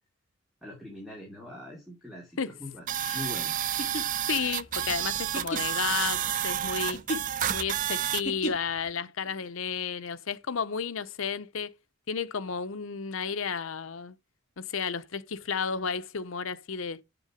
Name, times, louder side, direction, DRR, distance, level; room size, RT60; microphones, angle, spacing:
voice 1, 0.6-2.3 2.6-2.8 3.1-3.5 9.2-9.3, left 1 dB, ahead, 2.9 m, -41 dB
sound 1, 2.9-8.2, right 10 dB, 40° right, 0.4 m, -30 dB
sound 2, 3.6-8.9, equal, 35° left, 2.6 m, -36 dB
voice 2, 4.3-7.0 7.5-11.7 12.1-14.2 14.6-17.0, left 6 dB, 70° left, 0.7 m, -32 dB
8.3 x 7.0 x 5.1 m
head